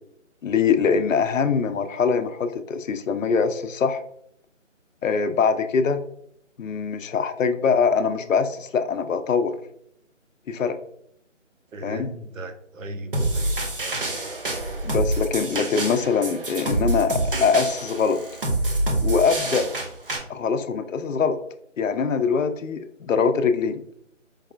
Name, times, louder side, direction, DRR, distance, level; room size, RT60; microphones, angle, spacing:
voice 1, 0.4-4.0 5.0-6.0 6.6-9.5 10.5-10.8 11.8-12.1 14.8-18.2 19.0-19.7 20.3-21.4 21.8-23.8, left 5 dB, 75° left, 10 dB, 0.5 m, -23 dB
voice 2, 11.7-14.4, right 1 dB, 85° right, 8 dB, 0.6 m, -38 dB
sound 1, 13.1-20.2, right 1 dB, 45° right, 0.6 m, -26 dB
4.7 x 2.3 x 2.3 m, 0.72 s
figure-of-eight pair, 155°, 39 cm